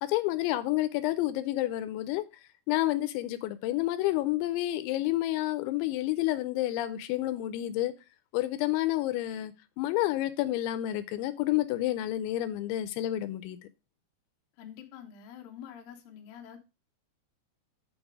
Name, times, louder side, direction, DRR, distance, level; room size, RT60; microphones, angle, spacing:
voice 1, 0.0-2.2 2.7-7.9 8.3-13.6, left 15 dB, 90° left, 3.0 m, -29 dB
voice 2, 14.6-16.6, left 9 dB, 75° left, 2.2 m, -46 dB
6.9 x 5.4 x 4.7 m
omnidirectional pair, 5.2 m